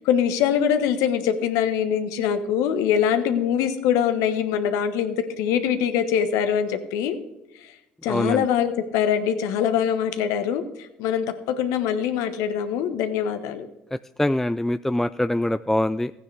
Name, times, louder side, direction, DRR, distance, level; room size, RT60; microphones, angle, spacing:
voice 1, 0.0-7.2 7.6-7.7 8.0-13.7, left 8 dB, 70° left, 10 dB, 1.1 m, -23 dB
voice 2, 8.1-8.5 13.9-16.1, left 1 dB, 5° left, 13 dB, 0.3 m, -24 dB
15.5 x 9.5 x 3.3 m, 0.97 s
hypercardioid pair, 60°, 6 cm